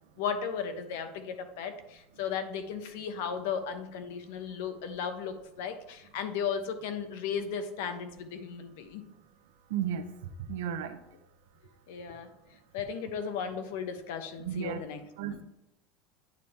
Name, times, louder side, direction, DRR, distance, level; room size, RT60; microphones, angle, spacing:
voice 1, 0.2-9.0 11.9-12.3 12.7-15.4, left 7 dB, 75° left, 8 dB, 0.9 m, -35 dB
voice 2, 9.7-10.0 10.5-11.0 14.4-14.8 15.2-15.3, right 9 dB, 85° right, 10 dB, 0.7 m, -33 dB
9.2 x 3.4 x 4.2 m, 0.91 s
supercardioid pair, 150°, 0 cm